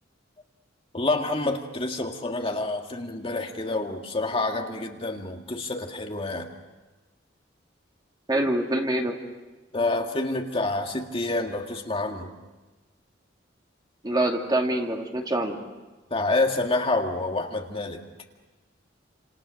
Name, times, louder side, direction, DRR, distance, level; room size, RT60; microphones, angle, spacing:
voice 1, 0.9-6.5 9.7-12.3 16.1-18.0, left 2 dB, 30° left, 2 dB, 2.1 m, -28 dB
voice 2, 8.3-9.2 14.0-15.6, right 1 dB, 20° right, 2 dB, 2.5 m, -25 dB
29.5 x 27.5 x 6.5 m, 1.2 s
head